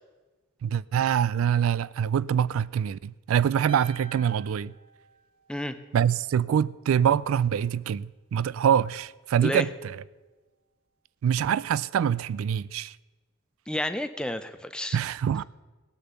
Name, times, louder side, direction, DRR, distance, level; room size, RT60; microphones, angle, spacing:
voice 1, 0.6-4.7 5.9-10.0 11.2-13.0 14.9-15.4, right 8 dB, 80° right, 0.3 m, -25 dB
sound 1, 3.7-5.9, right 3 dB, 25° right, 1.2 m, -48 dB
voice 2, 13.7-15.0, left 1 dB, 5° left, 0.5 m, -30 dB
18.0 x 6.7 x 6.9 m
head